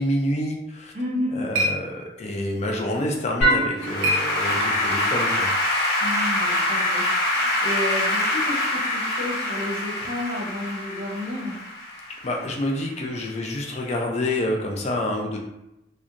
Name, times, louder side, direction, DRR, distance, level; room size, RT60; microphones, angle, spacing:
voice 1, 0.0-0.9 1.3-6.0 12.2-15.4, left 1 dB, 35° left, 0 dB, 0.4 m, -28 dB
sound 1, 0.8-5.0, equal, 85° right, 0.5 m, -31 dB
voice 2, 0.9-1.4 6.0-11.6, left 1 dB, 35° right, -4 dB, 0.7 m, -31 dB
Applause / Keyboard (musical), 3.4-12.7, left 1 dB, 70° left, 1.1 m, -24 dB
2.7 x 2.2 x 2.4 m, 0.89 s
head